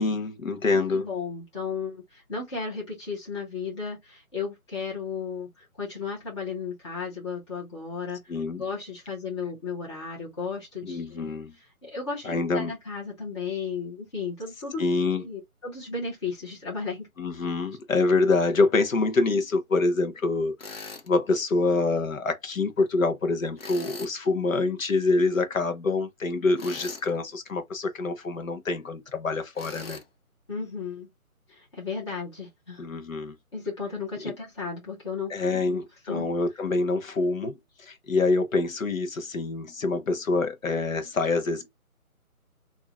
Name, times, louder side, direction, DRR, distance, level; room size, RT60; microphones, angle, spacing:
voice 1, 0.0-1.0 8.3-8.6 10.8-11.5 12.3-12.7 14.8-15.2 17.2-30.0 32.8-33.3 34.2-34.3 35.3-37.5 37.9-41.7, left 3 dB, 65° left, 1.1 m, -26 dB
voice 2, 0.7-8.2 8.6-14.8 15.1-17.1 30.5-31.1 31.5-32.8 33.5-36.3, left 5 dB, 20° left, 1.5 m, -34 dB
Tools, 20.6-21.1 23.6-24.2 26.6-27.1 29.5-30.0, left 3 dB, 40° left, 0.7 m, -41 dB
4.7 x 2.9 x 2.4 m
figure-of-eight pair, 165°, 44 cm